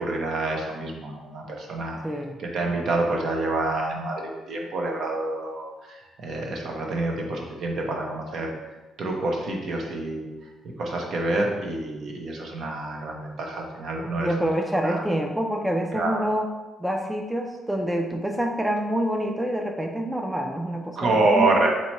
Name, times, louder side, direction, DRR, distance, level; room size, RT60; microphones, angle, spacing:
voice 1, 0.0-2.0 2.4-8.5 9.0-10.3 10.8-14.5 14.8-15.0 15.9-16.2 21.0-21.7, right 2 dB, 65° right, 1 dB, 0.8 m, -27 dB
voice 2, 2.0-2.4 14.2-16.5 16.8-21.7, equal, 5° right, 3 dB, 0.4 m, -27 dB
3.0 x 2.8 x 4.5 m, 1.1 s
cardioid pair, 90°, 0 cm